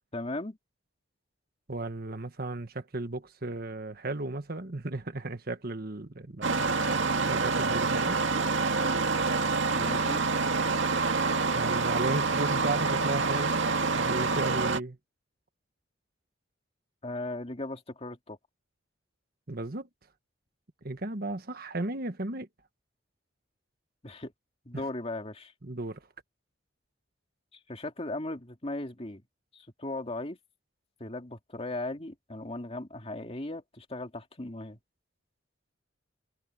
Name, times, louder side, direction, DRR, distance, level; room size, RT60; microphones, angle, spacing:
voice 1, 0.1-0.6 9.8-10.2 17.0-18.4 24.0-24.3 24.7-25.5 27.7-29.2 29.5-30.4 31.0-34.8, left 2 dB, 30° left, 2.4 m, -37 dB
voice 2, 1.7-8.2 11.5-15.0 19.5-19.9 20.8-22.5 24.7-24.8 25.6-26.0, right 2 dB, 50° right, 1.4 m, -35 dB
Engine starting, 6.4-14.8, right 4 dB, 75° right, 2.0 m, -27 dB
head